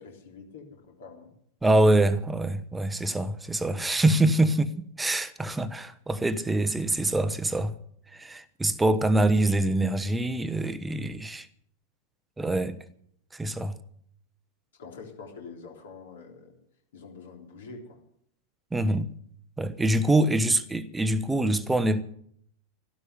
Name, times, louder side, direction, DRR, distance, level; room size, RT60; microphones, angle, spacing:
voice 1, 0.0-1.3 14.8-16.6 16.9-18.0 19.7-20.5, left 4 dB, 65° left, 3.6 m, -46 dB
voice 2, 1.6-7.7 8.1-11.5 12.4-12.8 13.3-13.8 18.7-19.1 19.6-22.0, right 1 dB, 10° right, 1.1 m, -25 dB
13.0 x 12.5 x 8.1 m
figure-of-eight pair, 90°, 0 cm